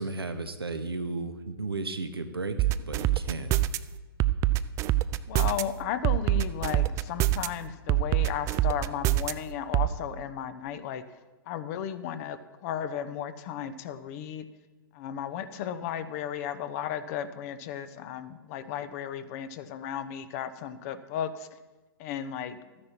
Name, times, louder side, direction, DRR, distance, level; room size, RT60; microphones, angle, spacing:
voice 1, 0.0-3.5, right 3 dB, 85° right, 8 dB, 1.0 m, -34 dB
sound 1, 2.6-3.8 4.2-5.6 6.0-7.5 7.9-9.3 9.7-9.9, right 16 dB, 25° right, 0.4 m, -24 dB
voice 2, 5.3-11.0 11.5-14.4 14.9-21.5 22.0-22.6, left 9 dB, 40° left, 11 dB, 0.9 m, -34 dB
13.0 x 9.6 x 4.4 m, 1.2 s
figure-of-eight pair, 110°, 12 cm